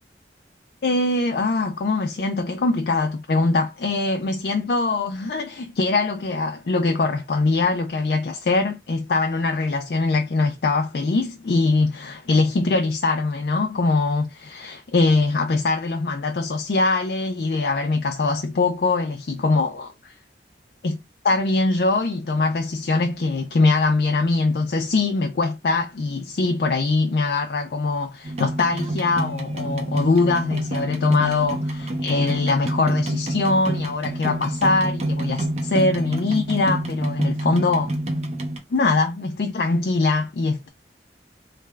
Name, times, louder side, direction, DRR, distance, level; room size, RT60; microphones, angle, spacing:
voice 1, 0.8-20.1 20.8-37.9 38.7-40.7, left 3 dB, 60° left, 0.4 m, -22 dB
sound 1, 28.2-38.6, right 1 dB, 40° right, 0.7 m, -28 dB
3.2 x 2.3 x 3.2 m
head